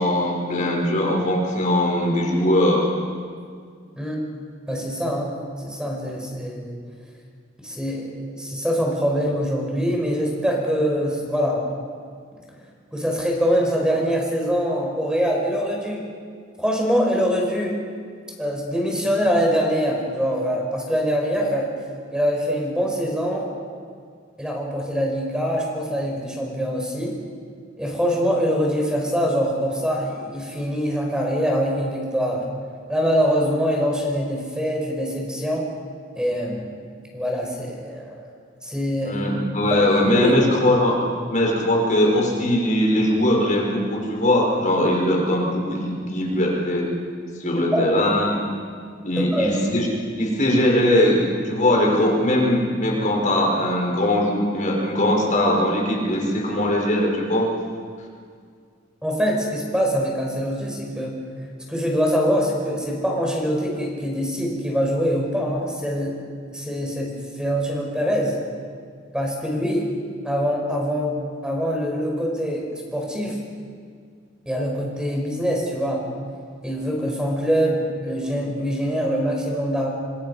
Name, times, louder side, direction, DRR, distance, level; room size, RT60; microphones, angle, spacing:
voice 1, 0.0-2.9 39.0-41.0 41.3-46.9 47.4-48.4 49.0-49.9 50.2-57.5, left 1 dB, 40° left, -1 dB, 5.5 m, -20 dB
voice 2, 4.7-5.3 5.6-6.8 7.6-11.6 12.9-16.0 16.6-17.8 18.4-21.7 22.1-23.5 24.4-27.2 27.8-32.4 32.9-35.7 36.2-36.7 37.1-38.3 38.6-39.2 39.6-39.8 40.1-40.3 47.6-47.8 49.2-49.5 59.0-61.1 61.7-66.2 66.5-68.4 69.1-69.9 70.2-72.6 72.9-73.4 74.5-76.1 76.6-79.9, equal, 5° right, 0 dB, 5.5 m, -24 dB
27.0 x 25.5 x 5.8 m, 2.1 s
head